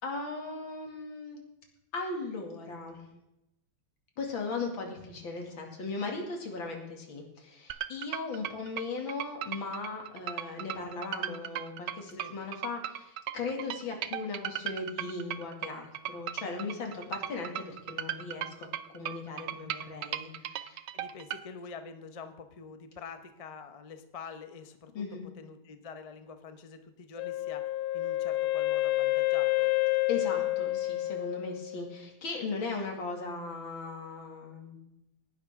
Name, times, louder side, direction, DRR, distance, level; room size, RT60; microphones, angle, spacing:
voice 1, 0.0-1.4 1.9-3.0 4.2-20.8 24.9-25.2 30.1-34.8, left 3 dB, 65° left, 1 dB, 3.2 m, -38 dB
sound 1, 7.7-21.4, right 11 dB, 70° right, 1.1 m, -37 dB
voice 2, 20.9-25.0 25.4-29.7, left 5 dB, 45° left, 8 dB, 0.4 m, -46 dB
Wind instrument woodwind instrument, 27.2-32.0, left 19 dB, 90° left, 1.6 m, -29 dB
18.5 x 11.0 x 3.7 m, 0.87 s
omnidirectional pair, 2.3 m